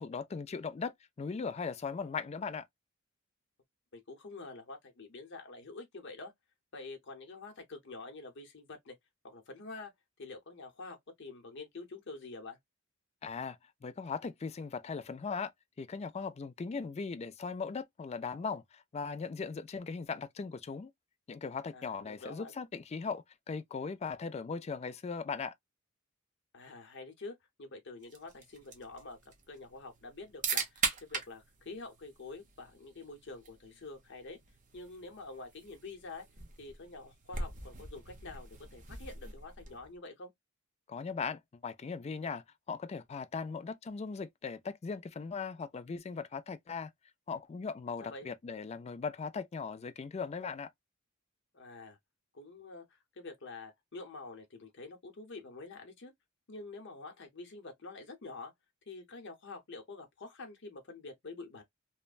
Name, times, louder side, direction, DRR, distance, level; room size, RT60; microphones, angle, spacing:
voice 1, 0.0-2.6 13.2-13.6 13.8-15.5 15.8-20.9 21.3-25.5 40.9-46.9 47.3-50.7, left 5 dB, 30° left, 0.3 m, -39 dB
voice 2, 3.9-6.3 6.7-9.0 9.2-9.9 10.2-12.6 21.7-22.5 26.5-29.2 29.5-34.4 34.7-36.2 36.6-40.3 48.0-48.3 51.5-52.0 52.3-56.1 56.5-58.5 58.9-61.6, left 3 dB, 55° left, 0.9 m, -47 dB
sound 1, 28.0-40.0, right 5 dB, 40° right, 0.7 m, -41 dB
3.0 x 2.1 x 2.4 m
head